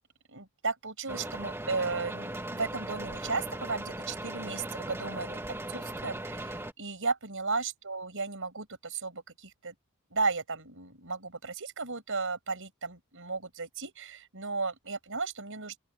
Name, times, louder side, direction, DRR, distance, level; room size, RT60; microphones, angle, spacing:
voice 1, 0.3-5.4 5.7-9.7 10.1-15.7, right 4 dB, 60° right, 5.9 m, -35 dB
sound 1, 1.1-6.7, right 1 dB, 10° right, 2.2 m, -38 dB
open air
head